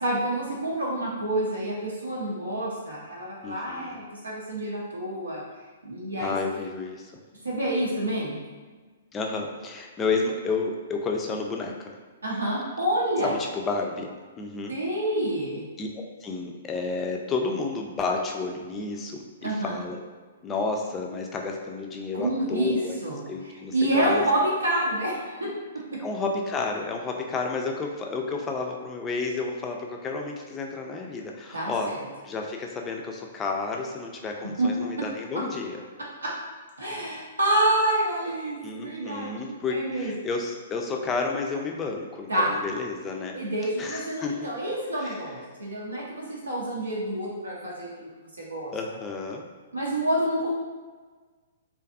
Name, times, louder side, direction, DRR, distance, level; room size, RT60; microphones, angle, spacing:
voice 1, 0.0-5.4 5.8-6.4 7.4-8.4 12.2-13.3 14.7-15.6 19.4-19.8 22.1-22.7 23.0-23.2 23.7-25.5 25.9-26.0 31.5-32.0 34.6-34.7 36.2-36.3 36.8-40.1 42.3-42.5 43.3-48.1 48.4-48.7 49.7-50.5, right 1 dB, 90° right, -5 dB, 0.5 m, -28 dB
voice 2, 3.4-4.0 6.2-7.1 9.1-11.9 13.2-14.8 15.8-15.9 16.2-20.0 20.4-23.0 23.3-24.3 26.0-31.9 32.2-35.8 38.6-43.4 43.8-44.5 45.0-45.4 48.7-49.4, left 4 dB, 20° left, 1 dB, 0.3 m, -31 dB
2.5 x 2.4 x 2.4 m, 1.4 s
hypercardioid pair, 120°, 0 cm